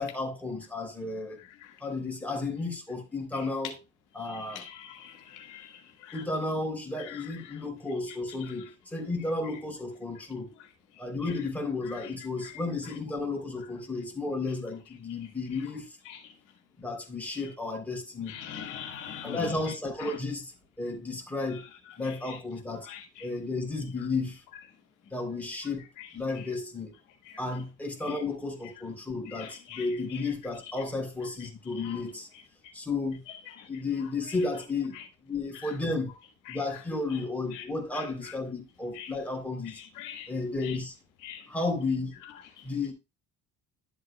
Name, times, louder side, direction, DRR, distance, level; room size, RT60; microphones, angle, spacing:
voice 1, 0.0-1.4 1.8-3.7 4.1-4.6 6.1-10.5 11.0-16.0 16.8-18.4 19.2-21.7 22.0-22.9 23.2-24.4 25.1-25.8 26.1-26.9 27.4-32.3 32.7-33.2 33.7-35.0 35.3-36.1 36.5-39.8 40.3-40.9 41.5-42.1 42.6-42.9, left 3 dB, 5° left, 3.2 m, -33 dB
voice 2, 1.4-1.8 3.3-3.4 4.2-6.2 7.0-7.6 8.4-8.5 10.9-11.0 11.8-12.1 12.4-12.5 16.1-16.3 17.3-17.5 18.3-19.6 20.0-20.2 22.0-22.4 22.8-23.3 26.0-26.1 27.2-27.4 28.0-28.2 29.3-30.3 31.8-32.0 32.6-32.7 33.5-33.7 34.3-34.4 34.9-35.1 35.5-35.8 36.5-36.6 37.1-37.2 37.5-37.6 37.9-38.3 38.9-39.1 39.7-40.3 40.6-40.8 41.2-41.5 42.2-42.7, left 9 dB, 70° left, 1.8 m, -44 dB
11.5 x 7.8 x 2.2 m
cardioid pair, 105°, 31 cm